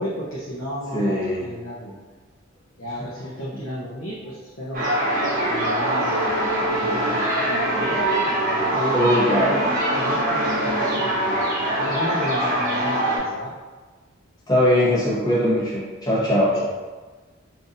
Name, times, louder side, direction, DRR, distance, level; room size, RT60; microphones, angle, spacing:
voice 1, 0.0-2.0 2.8-4.9 5.4-6.3 6.7-11.4 11.8-13.5 16.1-16.3 16.6-16.9, equal, 75° left, -8 dB, 0.7 m, -33 dB
voice 2, 0.9-1.5 8.9-9.6 14.5-16.5, left 1 dB, 20° left, -8 dB, 0.9 m, -20 dB
sound 1, 4.7-13.2, right 1 dB, 40° right, 0.9 m, -23 dB
3.8 x 2.6 x 2.5 m, 1.4 s
head